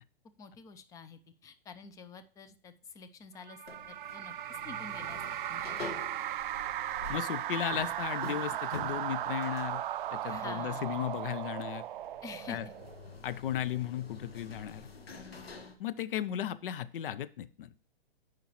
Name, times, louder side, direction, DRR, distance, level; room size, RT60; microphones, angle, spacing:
voice 1, 0.4-3.6 3.9-5.2 5.5-6.0 10.2-11.2 12.2-12.6, left 5 dB, 10° left, 11 dB, 0.4 m, -48 dB
sound 1, 3.5-13.2, right 12 dB, 60° right, 0.4 m, -37 dB
sound 2, 3.7-15.7, left 3 dB, 90° left, 1.3 m, -48 dB
voice 2, 7.1-9.8 10.1-11.8 12.5-12.7 13.2-14.9 15.8-17.7, left 10 dB, 65° left, 15 dB, 0.6 m, -35 dB
9.1 x 5.1 x 3.0 m, 0.43 s
hypercardioid pair, 115°, 29 cm